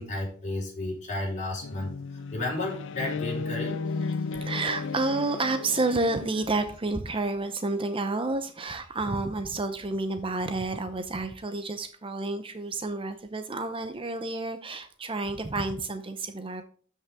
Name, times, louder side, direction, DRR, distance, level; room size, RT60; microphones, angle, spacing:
voice 1, 0.0-3.8, left 2 dB, 35° left, -2 dB, 4.3 m, -33 dB
sound 1, 1.6-6.8, left 4 dB, 60° left, 0.6 m, -34 dB
voice 2, 4.3-16.6, right 2 dB, 25° right, 9 dB, 0.7 m, -30 dB
12.5 x 5.6 x 3.5 m, 0.44 s
head